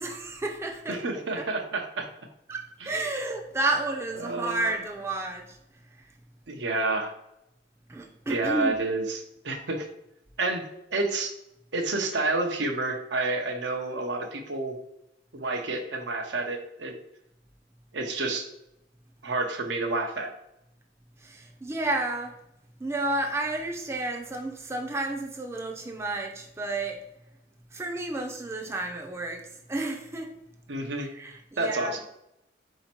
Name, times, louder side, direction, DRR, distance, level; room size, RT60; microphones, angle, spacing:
voice 1, 0.0-1.0 1.3-1.4 2.5-5.4 7.9-8.8 21.2-22.3 22.8-27.0 27.7-29.4 29.7-30.3 31.0-31.9, right 2 dB, 15° right, 1 dB, 0.5 m, -31 dB
voice 2, 0.9-2.1 2.8-2.9 4.2-4.7 6.5-7.1 8.3-9.9 10.4-10.6 10.9-11.3 11.7-14.7 15.3-16.9 17.9-18.5 19.2-20.3 30.7-31.1 31.6-32.0, right 2 dB, 80° right, 3 dB, 0.7 m, -29 dB
4.2 x 2.8 x 4.3 m, 0.82 s
head